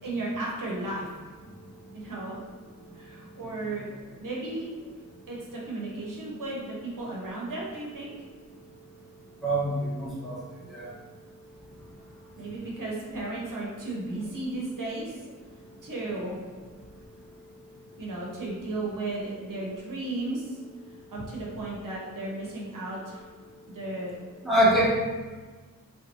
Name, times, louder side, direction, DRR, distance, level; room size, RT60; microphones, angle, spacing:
voice 1, 0.0-1.1 1.9-2.4 2.9-3.8 4.2-4.7 5.3-8.1 12.4-15.3 15.8-16.4 18.0-20.6 21.1-23.2 23.6-24.1, right 2 dB, 65° right, -4 dB, 1.0 m, -34 dB
voice 2, 9.4-10.4 10.7-10.9 24.4-24.9, right 1 dB, ahead, -8 dB, 1.0 m, -24 dB
3.9 x 2.6 x 3.0 m, 1.4 s
wide cardioid pair, 110°, 34 cm